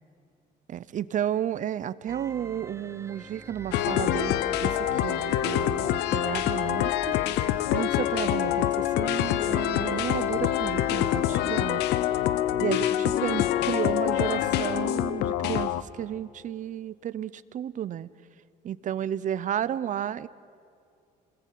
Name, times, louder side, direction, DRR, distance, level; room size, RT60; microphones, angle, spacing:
voice 1, 0.7-7.2 7.7-11.8 12.6-18.1 18.6-20.3, right 10 dB, 50° right, 18 dB, 0.7 m, -32 dB
sound 1, 2.1-11.2, right 4 dB, 15° right, 1.2 m, -45 dB
sound 2, 3.7-15.8, left 12 dB, 85° left, 0.9 m, -26 dB
26.0 x 21.0 x 8.5 m, 2.5 s
cardioid pair, 110°, 17 cm